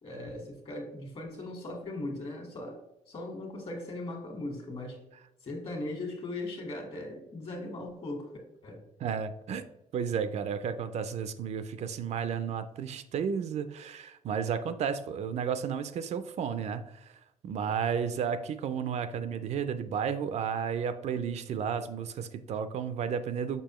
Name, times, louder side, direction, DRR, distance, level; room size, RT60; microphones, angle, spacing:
voice 1, 0.0-2.8 3.1-5.0 5.4-8.3 8.6-8.8, left 2 dB, 45° left, 2 dB, 1.6 m, -38 dB
voice 2, 9.0-9.7 9.9-17.2 17.4-23.6, right 7 dB, 60° right, 11 dB, 0.4 m, -32 dB
6.8 x 5.3 x 3.0 m, 0.89 s
cardioid pair, 135°, 13 cm